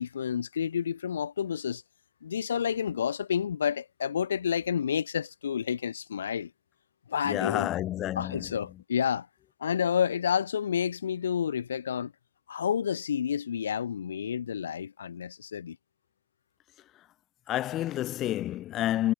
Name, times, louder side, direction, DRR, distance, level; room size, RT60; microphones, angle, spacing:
voice 1, 0.0-1.8 2.2-6.5 7.1-7.7 8.2-9.3 9.6-12.1 12.5-15.8, left 8 dB, 80° left, 0.9 m, -30 dB
voice 2, 7.2-8.6 17.5-19.1, left 14 dB, 40° left, 0.8 m, -29 dB
hypercardioid pair, 95°, 0 cm